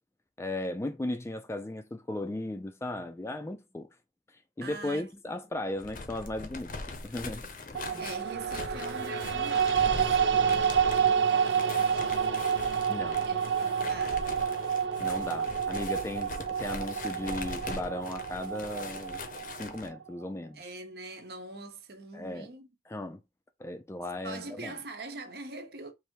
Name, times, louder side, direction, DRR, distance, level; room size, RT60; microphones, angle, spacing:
voice 1, 0.4-3.9 4.6-6.7 7.0-7.5 7.9-8.0 12.9-13.3 15.0-19.3 19.6-20.6 22.1-22.5 22.9-23.2 23.6-24.7, left 1 dB, 15° left, 0.3 m, -36 dB
voice 2, 4.6-5.4 8.0-12.5 13.3-14.4 20.5-22.7 24.2-25.9, right 2 dB, 60° right, 0.8 m, -43 dB
sound 1, 5.7-19.9, left 3 dB, 45° left, 0.6 m, -42 dB
sound 2, 7.7-20.0, right 7 dB, 85° right, 0.5 m, -29 dB
3.3 x 2.6 x 4.4 m
head